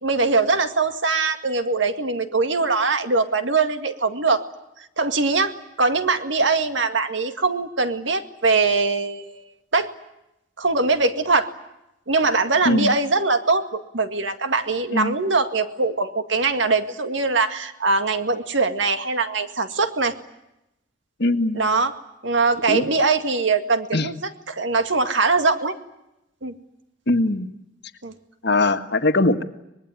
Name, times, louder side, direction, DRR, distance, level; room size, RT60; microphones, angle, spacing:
voice 1, 0.0-4.4 5.0-9.4 9.7-9.9 10.6-11.5 12.1-20.1 21.6-21.9 22.2-25.8 26.4-26.5 28.0-28.1, right 3 dB, 75° right, 8 dB, 2.1 m, -22 dB
voice 2, 21.2-21.6 22.7-22.9 23.9-24.1 27.1-27.5 28.4-29.4, left 2 dB, 60° left, 8 dB, 1.7 m, -21 dB
24.5 x 21.0 x 9.8 m, 0.89 s
head